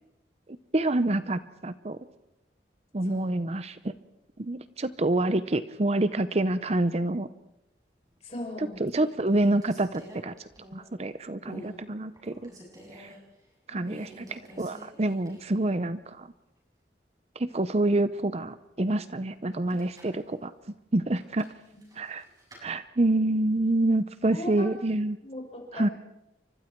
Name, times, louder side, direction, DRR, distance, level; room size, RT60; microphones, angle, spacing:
voice 1, 0.7-2.0 2.9-3.9 4.4-7.3 8.8-10.3 10.7-12.5 13.0-13.1 13.7-16.3 17.4-20.5 20.9-21.5 22.0-22.2 22.6-25.2 25.7-25.9, right 2 dB, 35° right, 13 dB, 0.7 m, -27 dB
voice 2, 3.0-3.4 8.2-8.8 13.7-14.2 21.7-21.8 24.3-24.7 25.2-25.9, left 1 dB, 35° left, 1 dB, 6.6 m, -39 dB
sound 1, 8.1-8.5 8.9-11.0 11.4-11.8 12.1-13.2 13.8-15.6 15.9-16.0 19.5-20.2 21.1-22.6, equal, 20° right, 7.4 m, -47 dB
29.5 x 25.0 x 4.6 m, 0.87 s
head